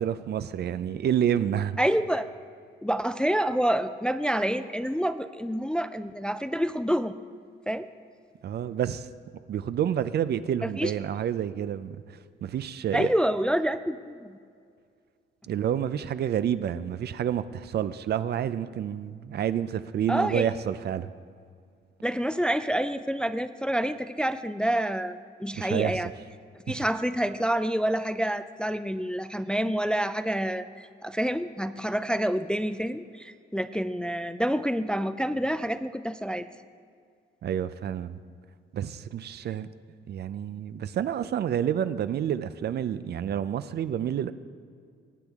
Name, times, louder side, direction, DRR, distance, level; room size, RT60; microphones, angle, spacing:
voice 1, 0.0-1.8 8.4-9.1 9.5-13.1 15.5-21.1 25.5-26.0 26.7-26.8 37.4-38.2 38.7-39.7 40.1-44.3, right 9 dB, 55° right, 13 dB, 0.5 m, -29 dB
voice 2, 1.8-2.3 2.8-7.1 7.7-7.9 10.6-10.9 12.9-14.3 20.1-20.5 22.0-26.1 26.7-36.5, equal, 5° left, 11 dB, 0.3 m, -28 dB
18.0 x 8.2 x 3.6 m, 2.2 s
cardioid pair, 90°, 20 cm